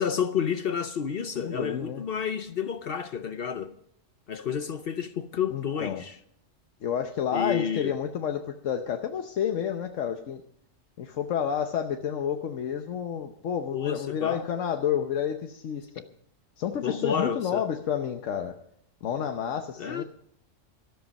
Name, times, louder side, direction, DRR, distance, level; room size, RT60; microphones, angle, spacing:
voice 1, 0.0-3.7 4.3-6.2 7.3-7.9 13.7-14.5 16.8-17.6 19.8-20.0, left 7 dB, 55° left, 0.8 m, -30 dB
voice 2, 1.4-2.0 5.5-6.0 6.8-10.4 11.0-16.0 16.6-18.5 19.0-20.0, left 8 dB, 85° left, 1.2 m, -30 dB
13.0 x 13.0 x 5.2 m
omnidirectional pair, 1.3 m